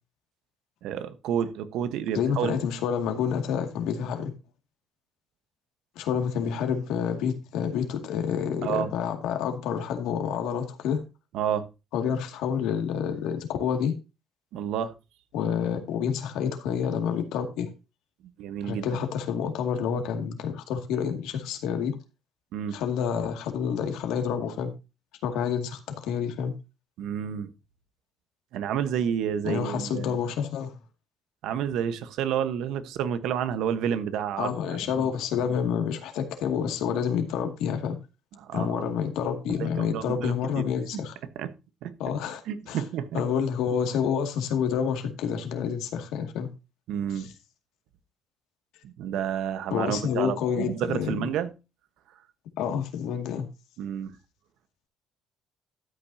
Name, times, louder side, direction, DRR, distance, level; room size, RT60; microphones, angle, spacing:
voice 1, 0.8-2.6 8.6-8.9 11.3-11.7 14.5-14.9 18.4-18.9 22.5-22.8 27.0-27.5 28.5-30.2 31.4-34.8 38.4-38.9 39.5-40.7 41.3-41.5 41.8-41.9 42.5-43.2 46.9-47.3 48.8-51.5 53.8-54.1, right 9 dB, 75° right, 1.2 m, -30 dB
voice 2, 2.1-4.3 6.0-11.0 11.9-13.9 15.3-17.7 18.6-21.9 22.7-24.7 25.2-26.5 29.4-30.8 34.4-38.0 38.5-41.1 42.0-42.4 42.7-42.8 43.1-46.5 47.2-47.3 49.7-51.3 52.6-53.5, left 7 dB, 85° left, 2.2 m, -28 dB
13.0 x 8.9 x 2.8 m
cardioid pair, 140°, 0 cm